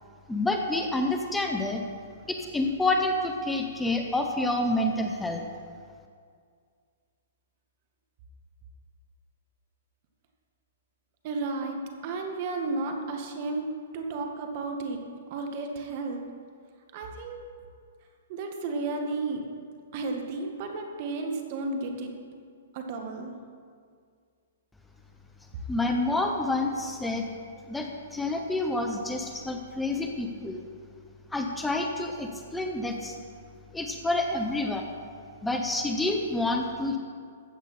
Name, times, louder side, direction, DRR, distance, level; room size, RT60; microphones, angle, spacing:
voice 1, 0.3-1.8 2.3-5.4 25.7-27.3 27.7-30.6 31.3-33.1 33.7-34.8 35.4-37.0, left 2 dB, 5° left, 3 dB, 0.8 m, -28 dB
voice 2, 11.2-13.6 13.9-15.0 15.3-16.2 16.9-17.4 18.3-19.4 19.9-22.1 22.7-23.3, right 3 dB, 45° right, 3 dB, 1.7 m, -33 dB
14.5 x 8.0 x 4.3 m, 2.1 s
hypercardioid pair, 130°, 0 cm